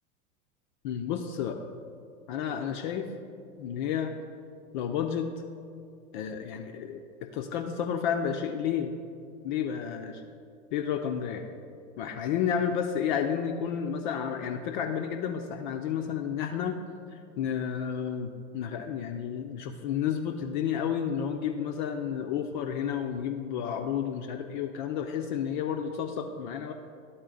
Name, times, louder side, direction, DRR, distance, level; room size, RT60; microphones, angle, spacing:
voice 1, 0.8-1.6 2.3-3.1 3.6-4.1 4.7-5.3 6.1-8.9 9.4-10.2 10.7-11.4 12.0-16.8 17.1-26.7, left 8 dB, 35° left, 4 dB, 0.4 m, -31 dB
11.0 x 4.2 x 3.7 m, 2.4 s
figure-of-eight pair, 85°, 44 cm